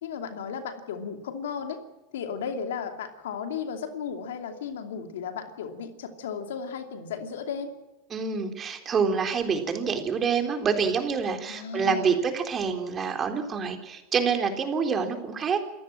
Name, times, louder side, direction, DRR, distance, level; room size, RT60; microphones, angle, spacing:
voice 1, 0.0-1.8 2.1-7.7 11.5-12.2, left 6 dB, 85° left, 7 dB, 2.7 m, -35 dB
voice 2, 8.1-15.6, right 6 dB, 30° right, 5 dB, 3.7 m, -27 dB
27.5 x 15.0 x 7.6 m, 1.1 s
supercardioid pair, 115°, 0 cm